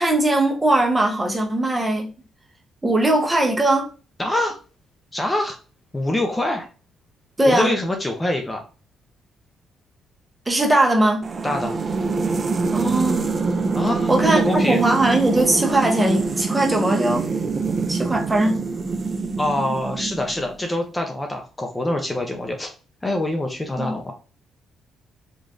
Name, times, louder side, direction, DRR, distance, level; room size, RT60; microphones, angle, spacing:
voice 1, 0.0-2.1 2.8-3.9 7.4-7.7 10.5-11.2 12.7-13.3 14.1-17.2 17.9-18.6 23.8-24.0, right 1 dB, 15° right, 1.0 m, -20 dB
voice 2, 4.2-4.6 5.1-5.6 5.9-6.7 7.5-8.6 11.4-11.8 13.7-14.8 19.4-22.7 23.0-24.1, left 1 dB, 15° left, 0.7 m, -25 dB
sound 1, 11.2-20.6, right 4 dB, 40° right, 0.5 m, -24 dB
3.6 x 3.2 x 2.6 m
cardioid pair, 90°, 0 cm